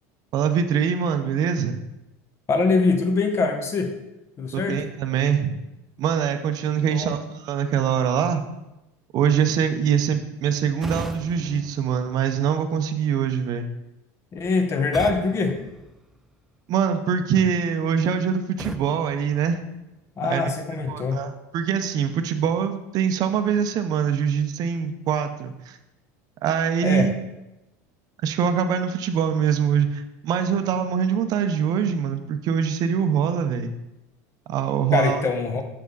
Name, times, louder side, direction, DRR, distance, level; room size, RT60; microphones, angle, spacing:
voice 1, 0.3-1.8 4.5-5.5 6.0-8.4 9.1-13.7 16.7-19.6 20.2-20.5 20.9-25.8 26.4-27.1 28.2-33.7 34.5-35.2, right 7 dB, 50° right, 8 dB, 0.7 m, -23 dB
voice 2, 2.5-3.9 4.4-4.8 6.8-7.1 14.3-15.6 20.2-21.2 26.8-27.1 34.9-35.6, left 4 dB, 30° left, 5 dB, 1.1 m, -23 dB
sound 1, 10.8-12.8 14.9-16.6 18.6-20.2, equal, ahead, 0.3 m, -39 dB
6.8 x 5.1 x 4.0 m, 0.94 s
supercardioid pair, 115°, 8 cm